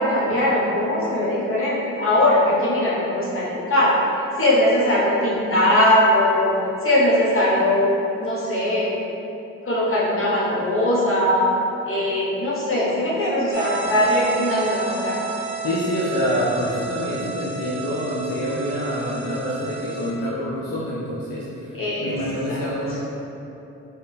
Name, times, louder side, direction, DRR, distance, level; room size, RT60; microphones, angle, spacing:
voice 1, 0.0-4.0 4.4-6.5 6.8-8.9 9.6-11.5 11.9-15.2 21.7-22.2 22.5-22.6, left 1 dB, 40° left, -7 dB, 1.3 m, -20 dB
sound 1, 13.5-20.1, right 4 dB, 45° right, 0.7 m, -32 dB
voice 2, 15.6-23.0, equal, 75° left, -7 dB, 0.6 m, -26 dB
4.1 x 2.1 x 3.4 m, 2.9 s
hypercardioid pair, 45°, 34 cm